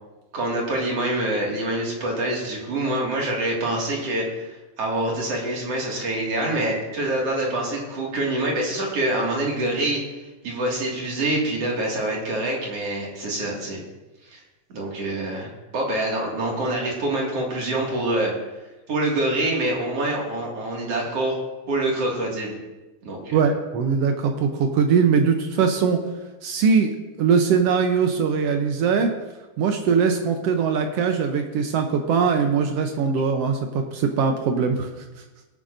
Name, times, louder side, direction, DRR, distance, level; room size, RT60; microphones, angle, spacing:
voice 1, 0.3-10.0 10.4-13.8 14.3-14.4 14.7-15.5 15.7-18.3 18.9-21.4 21.7-22.6 23.0-23.4, right 1 dB, 50° right, -2 dB, 2.9 m, -25 dB
voice 2, 23.3-26.0 26.4-26.9 27.2-29.1 29.6-34.9, right 6 dB, 85° right, 4 dB, 1.3 m, -21 dB
19.0 x 9.1 x 2.6 m, 1.1 s
omnidirectional pair, 3.8 m